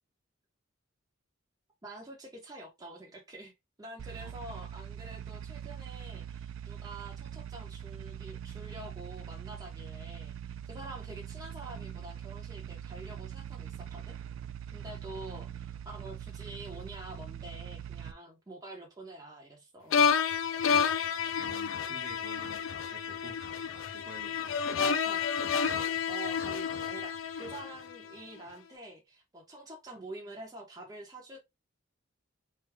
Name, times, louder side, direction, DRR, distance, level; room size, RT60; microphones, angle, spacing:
voice 1, 1.8-3.5 3.8-14.2 14.7-20.3 24.8-25.2 26.1-31.4, right 2 dB, 20° right, 0.9 m, -47 dB
sound 1, 4.0-18.1, right 9 dB, 75° right, 0.3 m, -42 dB
sound 2, 19.9-28.1, left 6 dB, 70° left, 0.4 m, -30 dB
voice 2, 21.4-23.4 23.9-24.9, right 2 dB, 45° right, 1.0 m, -50 dB
3.4 x 2.2 x 3.4 m
head